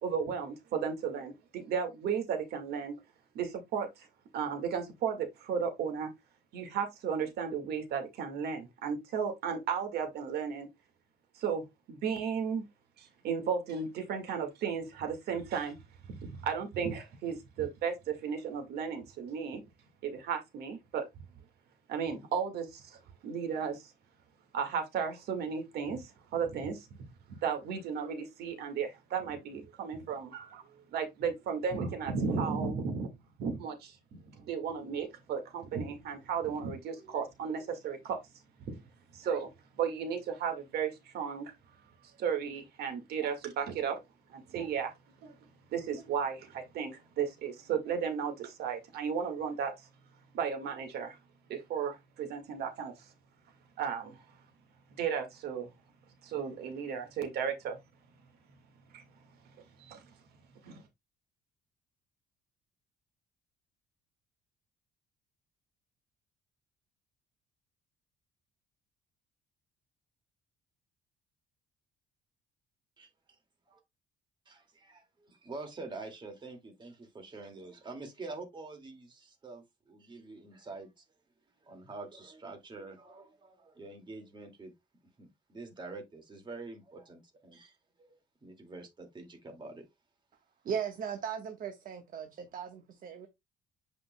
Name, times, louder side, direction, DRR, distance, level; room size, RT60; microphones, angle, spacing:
voice 1, 0.0-2.9 3.4-4.1 4.3-6.1 6.5-10.7 11.4-12.6 13.0-15.8 16.2-19.6 20.0-21.0 21.9-23.9 24.5-26.9 27.3-30.6 30.9-33.1 33.4-38.2 38.7-38.8 39.1-39.5 39.8-41.5 42.2-44.0 44.3-44.9 45.2-45.3 45.7-49.9 50.3-51.2 51.5-53.1 53.8-54.2 55.0-55.7 56.2-57.8 58.9-59.0 59.8-60.0 60.6-60.8, right 6 dB, 70° right, 1.8 m, -34 dB
voice 2, 74.5-81.0 81.6-84.7 85.2-89.9, right 3 dB, 25° right, 2.2 m, -46 dB
voice 3, 90.6-93.3, right 7 dB, 55° right, 1.3 m, -37 dB
8.2 x 5.1 x 2.2 m
cardioid pair, 110°, 17 cm